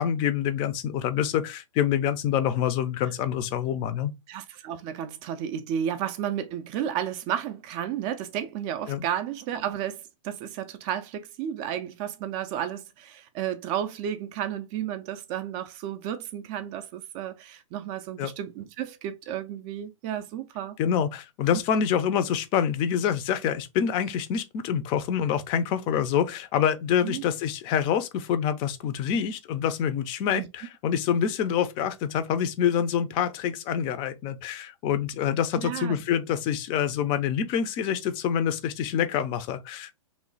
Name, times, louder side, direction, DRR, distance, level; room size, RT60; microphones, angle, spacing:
voice 1, 0.0-4.1 8.9-9.0 18.2-18.3 20.8-39.9, left 8 dB, 30° left, 0.4 m, -26 dB
voice 2, 4.3-20.8 27.0-27.2 30.3-30.5 35.6-36.0, right 10 dB, 30° right, 0.3 m, -32 dB
3.1 x 2.2 x 3.8 m
hypercardioid pair, 135°, 17 cm